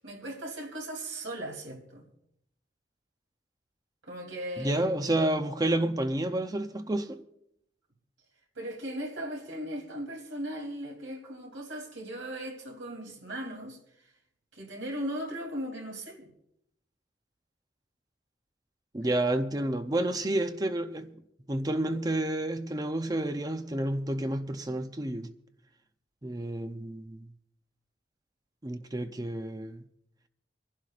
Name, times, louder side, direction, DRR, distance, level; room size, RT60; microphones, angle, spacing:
voice 1, 0.0-2.1 4.0-4.8 8.5-13.8 14.5-16.3 19.0-19.1, right 1 dB, 85° right, 3.1 m, -38 dB
voice 2, 4.6-7.2 18.9-21.1 21.5-25.3 26.2-27.3 28.6-29.8, right 1 dB, 20° right, 0.6 m, -30 dB
27.0 x 11.5 x 2.5 m
head